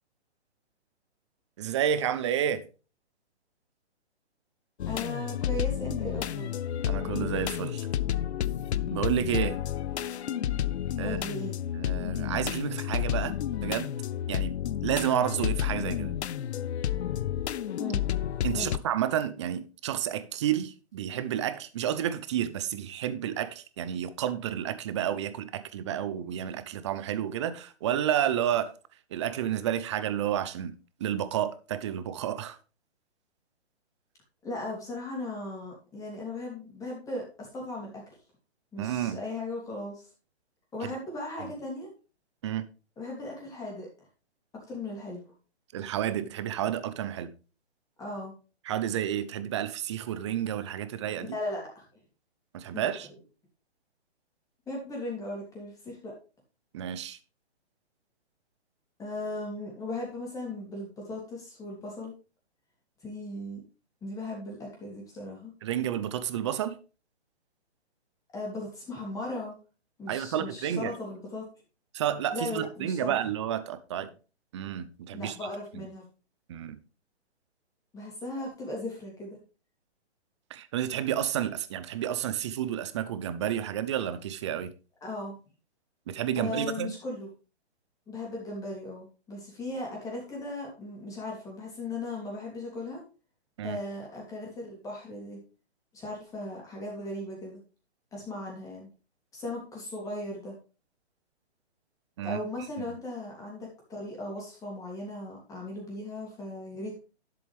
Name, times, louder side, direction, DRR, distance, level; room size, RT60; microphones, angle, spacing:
voice 1, 1.6-2.6 6.9-7.9 8.9-9.6 11.0-11.2 11.7-13.3 13.6-13.9 14.3-14.5 14.8-16.1 18.4-28.7 29.1-30.7 31.0-32.6 38.8-39.2 40.8-40.9 42.4-42.7 45.7-47.3 48.7-51.3 52.5-53.1 56.7-57.2 65.6-66.8 70.1-70.9 71.9-74.1 74.5-75.3 75.8-75.9 76.5-76.8 80.5-84.7 86.1-86.9 93.6-93.8 102.2-102.4 102.9-103.0, right 10 dB, 25° right, 0.6 m, -30 dB
sound 1, 4.8-18.8, left 11 dB, 75° left, 0.6 m, -31 dB
voice 2, 4.8-6.6 11.0-11.6 17.8-18.0 18.5-18.7 34.4-38.0 38.7-40.1 40.7-41.9 43.0-43.9 44.7-45.2 48.0-48.3 51.3-51.8 52.7-52.8 54.7-56.1 59.0-62.1 63.0-63.6 64.0-65.5 68.3-69.5 70.0-71.4 72.3-73.1 75.1-76.0 77.9-79.4 85.0-85.4 86.3-87.3 88.1-93.0 93.6-95.4 95.9-97.6 98.1-98.9 99.3-100.5 102.2-107.0, left 2 dB, 10° left, 2.8 m, -37 dB
10.5 x 7.8 x 3.4 m
hypercardioid pair, 155°, 33 cm